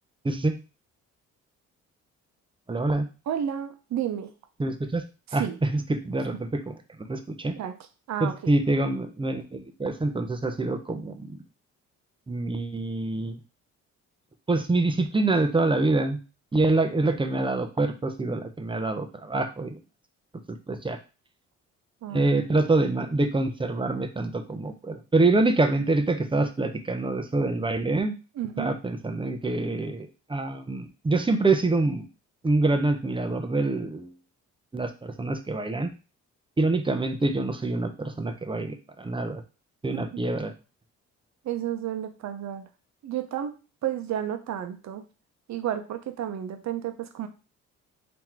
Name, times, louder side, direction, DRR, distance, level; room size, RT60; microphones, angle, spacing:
voice 1, 0.2-0.6 2.7-3.1 4.6-5.0 5.3-7.5 8.2-11.4 12.3-13.4 14.5-16.2 16.5-19.8 20.5-21.0 22.1-28.1 28.6-32.1 32.4-34.1 34.7-35.9 36.6-39.4 39.8-40.5, right 2 dB, 15° right, 7 dB, 0.7 m, -26 dB
voice 2, 3.3-4.3 5.3-5.6 7.6-7.7 8.1-8.5 22.0-22.3 22.5-22.6 28.4-28.7 39.9-40.1 41.4-42.6 43.0-43.5 43.8-45.0 45.5-47.3, right 10 dB, 65° right, 8 dB, 0.8 m, -31 dB
3.8 x 3.0 x 4.5 m, 0.32 s
cardioid pair, 90°, 30 cm